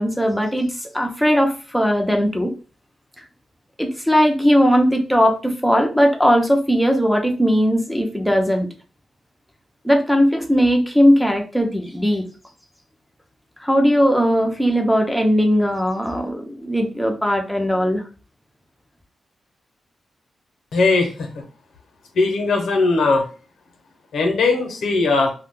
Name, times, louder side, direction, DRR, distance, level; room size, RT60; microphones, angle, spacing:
voice 1, 0.0-2.5 3.8-8.7 9.8-12.2 13.6-18.0, equal, ahead, 2 dB, 0.8 m, -18 dB
voice 2, 20.7-21.3 22.1-23.2 24.1-25.3, left 3 dB, 80° left, 2 dB, 1.0 m, -19 dB
2.5 x 2.4 x 3.7 m, 0.35 s
cardioid pair, 70°, 0 cm